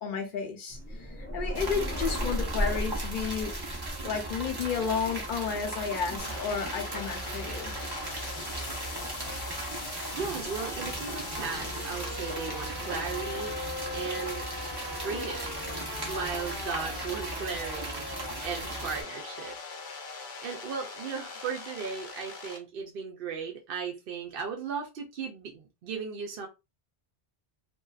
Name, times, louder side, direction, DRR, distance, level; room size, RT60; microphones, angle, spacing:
voice 1, 0.0-3.5 4.0-7.7, left 6 dB, 55° left, 0.8 m, -32 dB
sound 1, 0.7-5.7, equal, 15° left, 0.5 m, -35 dB
sound 2, 1.5-19.0, right 2 dB, 30° right, 0.6 m, -37 dB
sound 3, 6.2-22.6, left 4 dB, 85° left, 0.9 m, -40 dB
voice 2, 10.1-13.5 13.9-14.5 14.9-15.6 16.0-19.6 20.2-26.5, right 6 dB, 65° right, 0.7 m, -36 dB
2.6 x 2.2 x 2.3 m
omnidirectional pair, 1.0 m